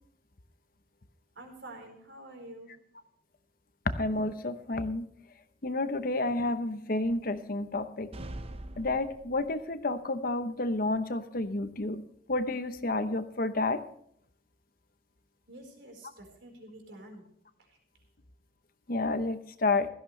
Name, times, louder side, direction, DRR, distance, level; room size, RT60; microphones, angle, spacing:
voice 1, 1.3-2.7 15.5-17.2 17.7-17.8, right 1 dB, 70° right, 3 dB, 4.5 m, -48 dB
voice 2, 3.9-5.1 5.6-8.1 8.8-12.0 12.3-13.8 18.9-19.9, left 2 dB, 50° left, 10 dB, 0.9 m, -30 dB
sound 1, 8.1-9.8, right 1 dB, 30° right, 0.7 m, -43 dB
16.5 x 14.0 x 3.3 m, 0.67 s
head